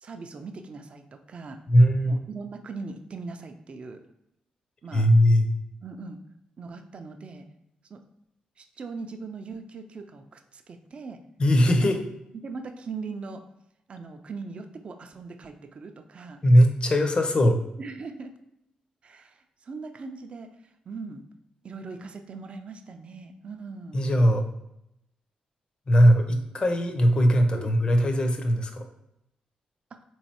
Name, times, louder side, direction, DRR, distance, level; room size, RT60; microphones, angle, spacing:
voice 1, 0.0-1.6 2.1-4.0 4.8-5.1 5.8-6.2 6.6-7.5 7.9-8.0 8.6-11.2 11.7-11.8 12.3-13.4 13.9-16.4 17.8-18.3 19.0-21.2 21.6-24.0 27.5-27.7 29.9-30.0, right 4 dB, 45° right, 6 dB, 0.4 m, -40 dB
voice 2, 1.7-2.2 4.9-5.5 11.4-12.0 16.4-17.6 23.9-24.4 25.9-28.8, equal, 35° left, 5 dB, 0.6 m, -20 dB
3.8 x 3.1 x 2.9 m, 0.83 s
cardioid pair, 85°, 3 cm